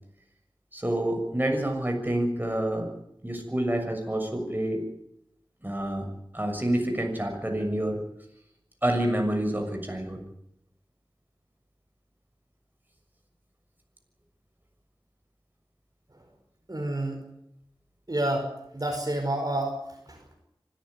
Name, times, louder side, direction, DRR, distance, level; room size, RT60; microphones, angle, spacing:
voice 1, 0.7-2.9 3.2-4.8 5.6-6.0 6.3-8.0 8.8-10.2, right 1 dB, 20° right, 3 dB, 6.5 m, -28 dB
voice 2, 16.7-17.3 18.1-20.4, right 1 dB, 45° right, 3 dB, 5.1 m, -30 dB
25.5 x 14.0 x 9.8 m, 0.79 s
wide cardioid pair, 40°, 9 cm